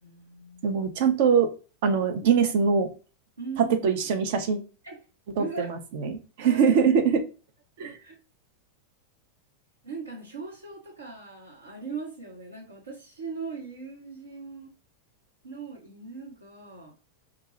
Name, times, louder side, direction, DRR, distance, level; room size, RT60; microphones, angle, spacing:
voice 1, 0.0-0.6 3.4-3.9 4.8-5.0 5.3-5.7 6.4-6.8 7.8-8.2 9.8-14.7 15.4-16.9, right 4 dB, 75° right, 0 dB, 0.9 m, -39 dB
voice 2, 0.6-1.5 1.8-2.9 3.8-4.6 5.4-7.2 7.8-7.9, right 6 dB, 50° right, 7 dB, 0.5 m, -23 dB
2.4 x 2.2 x 3.0 m, 0.34 s
figure-of-eight pair, 90°, 0 cm